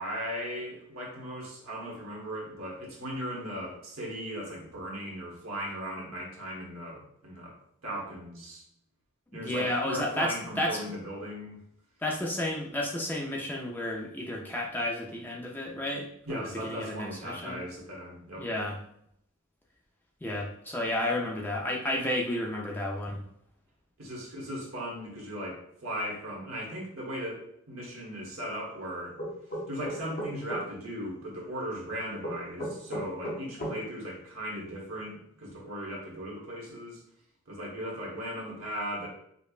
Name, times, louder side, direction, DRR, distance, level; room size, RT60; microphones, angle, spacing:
voice 1, 0.0-7.5 7.8-8.6 9.3-11.6 16.2-18.5 24.0-29.2 29.7-37.0 37.5-39.1, equal, 70° right, -3 dB, 1.2 m, -37 dB
voice 2, 9.3-11.0 12.0-17.6 18.4-18.8 20.2-23.2, left 1 dB, 10° left, -2 dB, 0.4 m, -32 dB
sound 1, 29.2-30.6 32.2-33.8, equal, 40° left, 0.9 m, -34 dB
5.1 x 2.1 x 2.4 m, 0.72 s
head